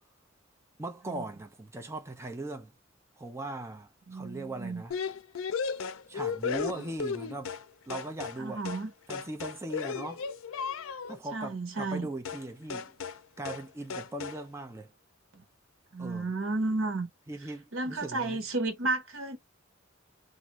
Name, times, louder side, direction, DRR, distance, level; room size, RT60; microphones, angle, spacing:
voice 1, 0.8-2.7 3.2-4.9 6.1-7.5 7.9-8.6 9.1-10.2 11.1-12.9 13.4-14.9 16.0-16.3 17.3-18.4, right 2 dB, 15° right, 0.5 m, -39 dB
voice 2, 4.1-4.8 8.4-8.9 11.3-12.1 15.3-15.4 15.9-17.1 17.7-19.4, right 2 dB, 85° right, 1.0 m, -32 dB
sound 1, 4.9-7.7 7.9-8.4 8.7-8.9 9.1-11.2 12.3-12.5 12.7-13.2 13.5-13.7 13.9-14.4, left 6 dB, 90° left, 0.4 m, -35 dB
2.6 x 2.6 x 3.0 m
head